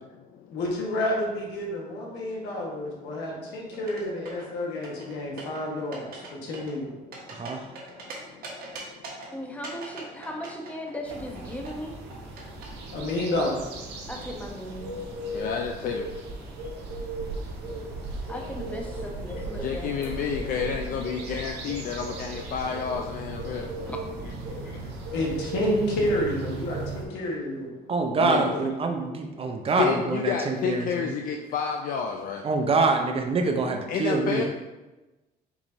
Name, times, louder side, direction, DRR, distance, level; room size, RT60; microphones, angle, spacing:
voice 1, 0.5-6.1 6.4-6.9 12.9-13.6 25.1-27.7, left 1 dB, 85° left, -2 dB, 1.3 m, -29 dB
sound 1, 3.7-4.5 4.8-5.6 5.9-6.3 6.5-8.1 8.4-9.3 9.6-12.7, right 4 dB, 60° right, 1.2 m, -41 dB
voice 2, 7.3-7.6 27.9-31.1 32.4-34.4, right 3 dB, 35° right, 4 dB, 0.6 m, -25 dB
voice 3, 8.0-8.3 9.3-11.9 14.1-15.0 18.3-19.9 23.8-24.0 26.9-27.0, left 1 dB, 10° left, 1 dB, 0.7 m, -37 dB
sound 2, 11.1-27.1, right 2 dB, 85° right, 0.9 m, -36 dB
voice 4, 15.3-16.1 19.3-23.7 28.2-28.7 29.7-32.4 33.9-34.4, left 7 dB, 55° left, 3 dB, 0.4 m, -30 dB
4.7 x 4.1 x 2.6 m, 1.1 s
cardioid pair, 110°, 17 cm